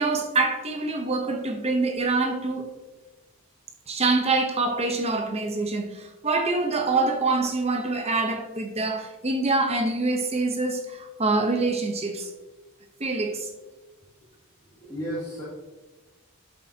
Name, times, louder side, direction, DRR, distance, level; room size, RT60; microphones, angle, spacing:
voice 1, 0.0-2.7 3.9-12.3 13.0-13.5, right 3 dB, 25° right, 4 dB, 1.0 m, -25 dB
voice 2, 14.6-15.4, equal, 15° left, -10 dB, 2.3 m, -35 dB
11.0 x 7.3 x 2.9 m, 1.2 s
head